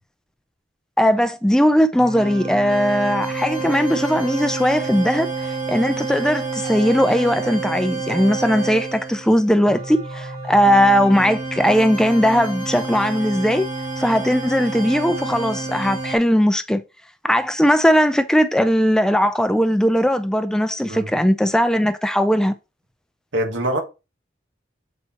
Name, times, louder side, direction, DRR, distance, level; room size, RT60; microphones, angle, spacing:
voice 1, 1.0-13.7 14.0-16.8 17.2-22.5, equal, 5° left, 0.4 m, -18 dB
sound 1, 2.0-16.2, right 3 dB, 30° right, 2.4 m, -29 dB
voice 2, 23.3-23.8, right 1 dB, 90° right, 1.7 m, -23 dB
7.9 x 4.2 x 2.9 m
head